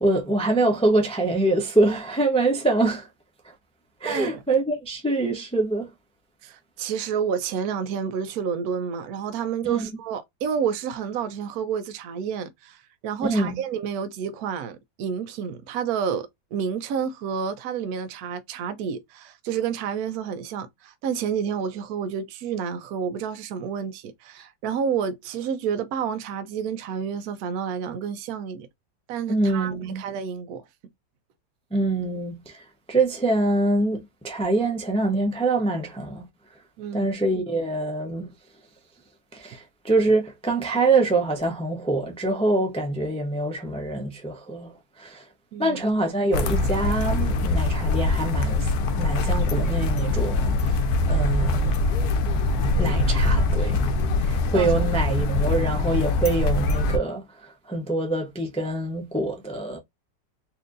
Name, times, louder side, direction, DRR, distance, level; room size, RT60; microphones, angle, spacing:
voice 1, 0.0-3.1 4.0-5.9 9.7-10.0 13.2-13.6 29.3-30.0 31.7-32.6 32.9-36.2 36.9-38.3 39.3-45.2 45.6-50.8 51.1-51.8 52.8-53.8 54.2-59.8, right 2 dB, 5° left, 0.4 m, -25 dB
voice 2, 4.0-4.4 6.4-28.7 29.1-30.6 36.8-37.1 45.5-45.8 54.5-54.7, right 7 dB, 70° right, 1.0 m, -29 dB
sound 1, 46.3-57.0, left 2 dB, 70° left, 1.1 m, -23 dB
4.3 x 2.6 x 2.5 m
omnidirectional pair, 1.8 m